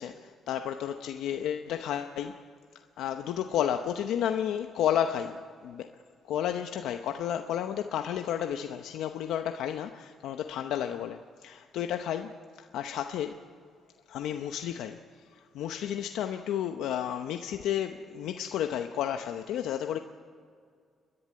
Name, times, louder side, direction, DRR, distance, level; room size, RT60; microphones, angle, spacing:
voice 1, 0.0-2.5 3.0-5.9 6.2-13.4 14.1-15.0 15.3-20.0, left 10 dB, 85° left, 6 dB, 0.8 m, -32 dB
30.0 x 11.0 x 9.6 m, 2.1 s
cardioid pair, 90°, 0 cm